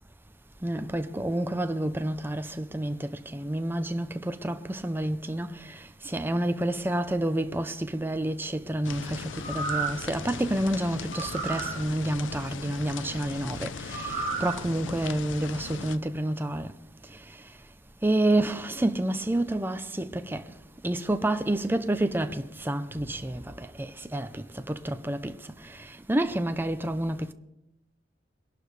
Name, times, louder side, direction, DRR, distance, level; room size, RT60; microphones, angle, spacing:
voice 1, 0.6-5.8 6.0-16.7 18.0-20.4 20.8-25.3 25.6-27.3, right 1 dB, 10° right, 0.6 m, -29 dB
sound 1, 8.8-16.0, left 5 dB, 90° left, 0.6 m, -39 dB
sound 2, 9.3-10.1 11.1-11.8 13.9-14.6 15.0-15.1, right 5 dB, 45° right, 1.9 m, -32 dB
23.0 x 11.5 x 3.3 m
head